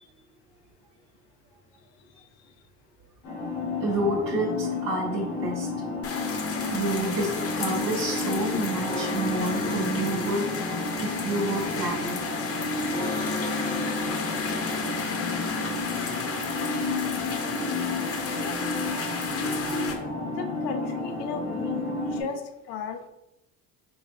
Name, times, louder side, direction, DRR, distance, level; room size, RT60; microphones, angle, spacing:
sound 1, 3.2-22.2, left 2 dB, 85° left, 1.4 m, -32 dB
voice 1, 3.8-5.7 6.7-10.5 11.0-12.4, right 1 dB, 75° right, -3 dB, 1.3 m, -29 dB
sound 2, 6.0-19.9, left 4 dB, 35° left, 0.9 m, -33 dB
sound 3, 6.2-15.8, left 4 dB, 10° left, 0.5 m, -36 dB
voice 2, 18.4-18.9 19.3-20.0 20.2-23.1, left 6 dB, 65° left, 6 dB, 0.6 m, -37 dB
5.0 x 3.2 x 2.5 m, 0.89 s
hypercardioid pair, 70°, 43 cm